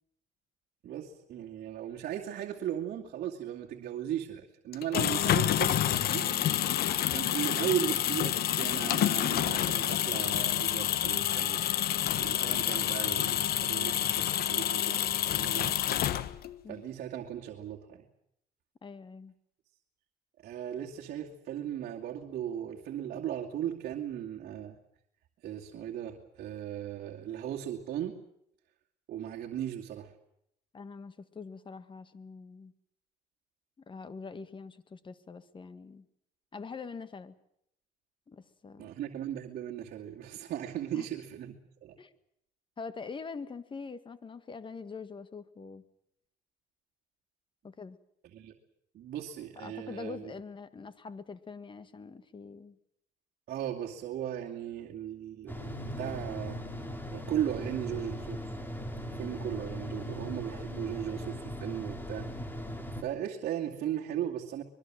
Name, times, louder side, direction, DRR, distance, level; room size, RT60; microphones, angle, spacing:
voice 1, 0.8-6.4 7.0-11.6 12.2-16.1 16.7-18.1 20.4-24.8 25.4-28.2 29.1-30.1 38.8-42.0 48.3-48.5 48.9-50.3 53.5-56.6 57.1-58.4 59.0-62.3 63.0-64.6, right 10 dB, 65° right, -1 dB, 2.5 m, -37 dB
sound 1, 4.7-16.6, left 11 dB, 65° left, 1.3 m, -28 dB
voice 2, 18.8-19.3 30.7-32.7 33.9-36.1 36.5-37.3 38.3-38.9 40.9-41.1 42.0-42.1 42.8-45.8 47.6-48.0 49.5-52.8, left 4 dB, 30° left, 13 dB, 1.8 m, -44 dB
sound 2, 55.5-63.0, equal, 10° left, 3.5 m, -39 dB
25.5 x 22.0 x 7.6 m, 0.75 s
cardioid pair, 110°, 17 cm